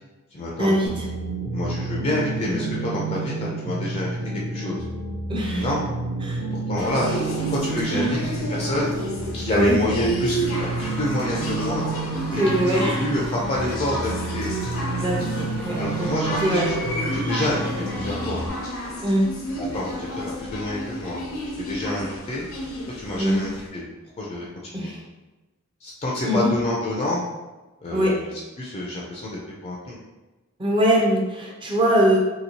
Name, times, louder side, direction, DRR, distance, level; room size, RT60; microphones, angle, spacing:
voice 1, 0.3-0.8 1.5-4.8 5.5-5.8 6.5-7.1 7.4-8.9 9.3-11.9 12.3-14.5 15.8-18.4 19.6-21.2 21.6-22.5 23.0-23.8 24.2-24.9 25.8-27.2 27.8-30.0, left 1 dB, 30° left, -4 dB, 0.4 m, -28 dB
sound 1, 0.9-18.5, right 3 dB, 75° right, 0.5 m, -30 dB
voice 2, 5.3-5.7 6.2-6.4 7.9-8.2 9.5-9.8 12.3-13.0 14.9-16.1 16.4-16.7 19.0-19.3 23.2-23.4 24.7-25.0 26.2-26.4 27.9-28.1 30.6-32.2, right 1 dB, 25° right, -1 dB, 0.5 m, -22 dB
sound 2, 6.8-23.7, equal, 80° left, 0.7 m, -31 dB
Screaming / Cheering / Crowd, 10.5-19.1, equal, 55° right, 1.3 m, -39 dB
2.9 x 2.7 x 2.7 m, 1.1 s
head